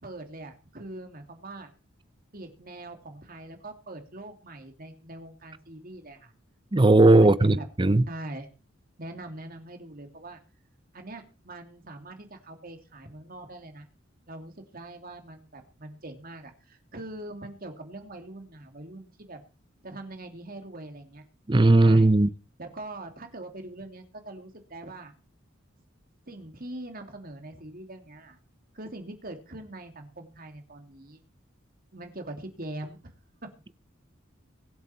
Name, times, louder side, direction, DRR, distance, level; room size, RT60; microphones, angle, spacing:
voice 1, 0.0-1.7 2.3-6.3 7.2-7.7 8.1-8.5 9.0-10.4 10.9-13.9 14.3-19.4 19.8-21.2 21.8-22.1 22.6-25.1 26.3-28.4 28.7-31.2 31.9-33.0, right 1 dB, 50° right, 3.0 m, -42 dB
voice 2, 6.7-8.0 21.5-22.3, right 2 dB, 25° right, 0.7 m, -17 dB
23.0 x 8.2 x 4.5 m
head